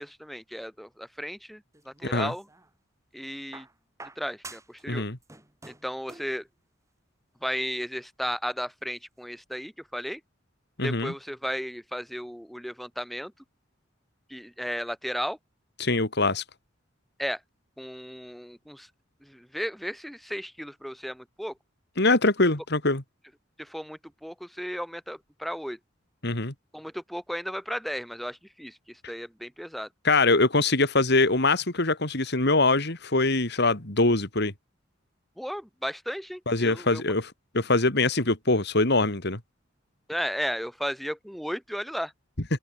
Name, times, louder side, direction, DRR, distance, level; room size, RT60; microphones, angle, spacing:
voice 1, 0.0-2.5 3.1-3.7 4.2-5.0 5.7-6.5 7.4-10.2 10.8-13.3 14.3-15.4 17.2-17.4 17.8-18.9 19.2-21.5 23.6-25.8 26.7-29.9 35.4-37.0 40.1-42.1, equal, ahead, 4.3 m, -34 dB
sound 1, 1.7-2.7 3.5-4.9 5.1-6.4 7.5-7.6, right 3 dB, 15° right, 6.9 m, -47 dB
voice 2, 4.9-5.2 10.8-11.1 15.8-16.4 22.0-23.0 26.2-26.5 30.1-34.5 36.5-39.4, left 2 dB, 60° left, 3.3 m, -23 dB
open air
head